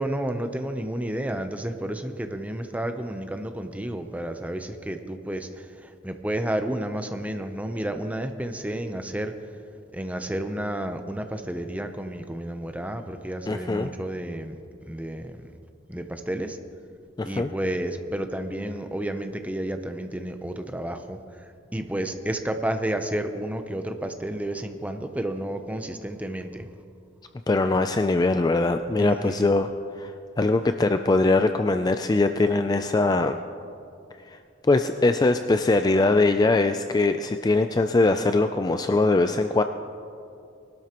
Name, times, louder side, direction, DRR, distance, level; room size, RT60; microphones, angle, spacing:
voice 1, 0.0-9.3 9.9-14.6 14.9-15.4 15.9-16.6 17.2-26.7 29.0-29.5, right 1 dB, 10° right, 7 dB, 0.6 m, -31 dB
voice 2, 13.5-13.9 17.2-17.5 27.5-29.7 30.0-33.4 34.3-34.4 34.6-39.6, left 2 dB, 20° left, 8 dB, 0.3 m, -22 dB
21.5 x 12.5 x 3.0 m, 2.5 s
head